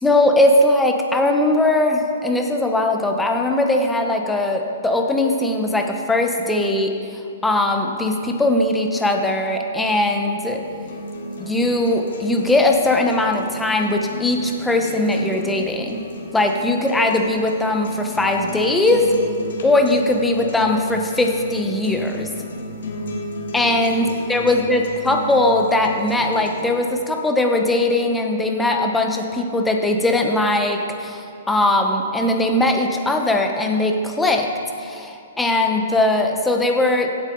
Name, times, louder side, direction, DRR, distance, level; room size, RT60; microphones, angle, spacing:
voice 1, 0.0-10.6 11.4-16.1 16.3-19.1 19.6-22.3 23.5-34.5 34.8-37.1, left 2 dB, 5° left, 3 dB, 1.0 m, -20 dB
sound 1, 10.6-26.6, equal, 75° left, 1.7 m, -33 dB
16.0 x 8.0 x 3.9 m, 2.4 s
hypercardioid pair, 135°, 0 cm